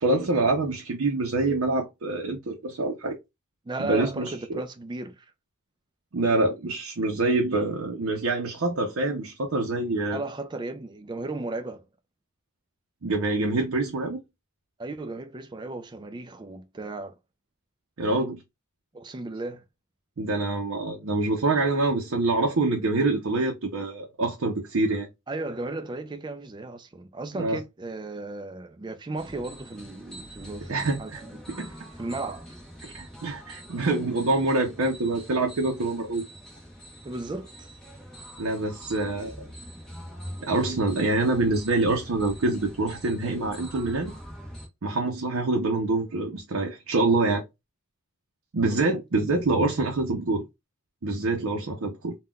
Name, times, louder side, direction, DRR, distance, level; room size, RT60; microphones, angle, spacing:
voice 1, 0.0-3.2 3.8-4.6 6.1-10.2 13.0-14.2 18.0-18.4 20.2-25.1 27.3-27.6 30.7-31.2 31.5-31.7 32.8-36.2 38.4-39.5 40.4-44.1 44.8-47.4 48.5-50.4 51.0-52.2, right 2 dB, 65° right, 0.6 m, -26 dB
voice 2, 3.7-5.3 10.1-11.8 14.8-17.2 18.9-19.6 25.3-32.5 37.0-37.7, right 2 dB, 20° right, 0.3 m, -35 dB
sound 1, 29.2-44.7, equal, 5° left, 0.9 m, -43 dB
3.6 x 2.2 x 2.2 m
head